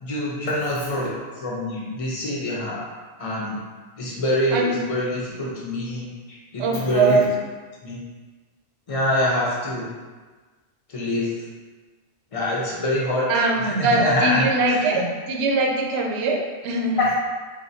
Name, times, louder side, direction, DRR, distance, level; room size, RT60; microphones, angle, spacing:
voice 1, 0.0-2.8 3.2-3.6 4.0-7.2 7.8-8.0 8.9-9.9 10.9-11.3 12.3-13.3 13.6-15.0 17.0-17.1, left 1 dB, 35° left, -5 dB, 0.6 m, -25 dB
voice 2, 6.6-7.3 13.3-17.0, right 3 dB, 65° right, 1 dB, 0.7 m, -22 dB
3.7 x 2.8 x 2.7 m, 1.4 s
omnidirectional pair, 1.3 m